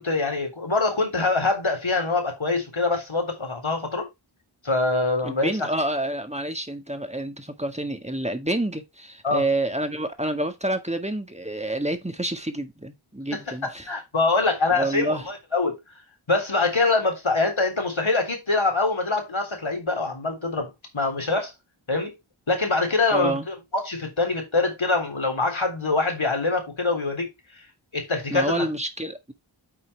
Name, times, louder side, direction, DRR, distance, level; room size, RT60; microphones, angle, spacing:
voice 1, 0.0-4.1 4.6-5.7 9.2-9.4 13.9-15.7 16.3-21.5 21.9-22.1 22.5-27.3 27.9-28.7, left 3 dB, 75° left, 3.7 m, -24 dB
voice 2, 5.2-13.9 14.7-15.3 23.1-23.5 28.3-29.3, right 1 dB, 15° right, 1.7 m, -28 dB
8.8 x 5.7 x 3.4 m
wide cardioid pair, 50°, 48 cm